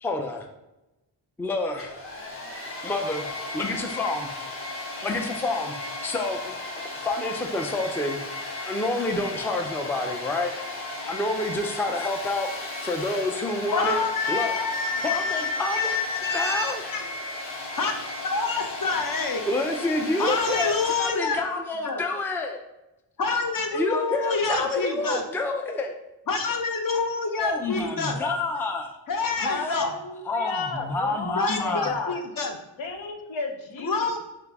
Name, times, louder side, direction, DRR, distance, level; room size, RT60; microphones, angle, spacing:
voice 1, 0.0-0.5 1.4-2.0 2.8-3.3 3.5-4.3 5.0-6.5 7.0-8.2 8.7-10.5 11.0-12.5 12.8-14.5 15.0-16.0 16.3-16.8 19.5-22.6 23.7-25.9 27.4-29.0 30.3-32.0, left 2 dB, 5° left, 4 dB, 0.4 m, -28 dB
Domestic sounds home sounds, 1.7-21.2, left 2 dB, 30° left, 1.1 m, -35 dB
voice 2, 13.7-17.0 17.7-17.9 18.2-19.4 20.2-22.0 23.2-25.2 26.3-28.2 29.1-29.9 31.4-32.5 33.8-34.2, left 4 dB, 45° left, 4 dB, 0.7 m, -27 dB
voice 3, 29.4-32.2 32.8-34.2, left 4 dB, 85° left, 4 dB, 0.7 m, -33 dB
5.7 x 2.0 x 3.5 m, 0.96 s
wide cardioid pair, 80°, 46 cm